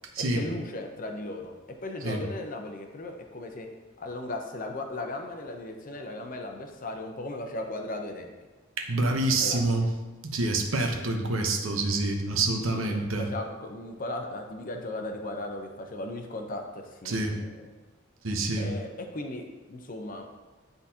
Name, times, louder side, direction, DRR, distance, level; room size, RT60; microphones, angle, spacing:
voice 1, 0.3-1.6 1.8-3.7 4.0-8.3 9.4-9.9 12.7-17.6 18.6-19.4 19.7-20.3, left 2 dB, 45° left, 3 dB, 0.7 m, -37 dB
voice 2, 8.8-9.9 10.2-13.3 17.0-17.4 18.2-18.7, right 2 dB, 80° right, 2 dB, 0.9 m, -27 dB
10.0 x 4.0 x 2.8 m, 1.2 s
head